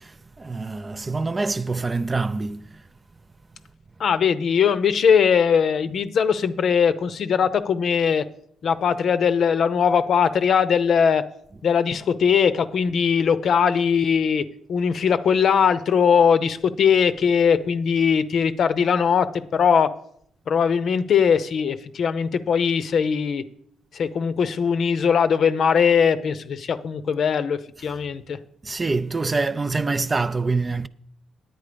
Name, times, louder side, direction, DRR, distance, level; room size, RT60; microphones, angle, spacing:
voice 1, 0.0-2.8 11.5-11.6 28.6-30.9, right 3 dB, 25° right, 0.4 m, -25 dB
voice 2, 4.0-8.3 8.6-11.2 11.6-19.9 20.5-23.4 23.9-28.4, left 7 dB, 60° left, 0.7 m, -20 dB
9.6 x 8.9 x 5.1 m
cardioid pair, 90°, 0 cm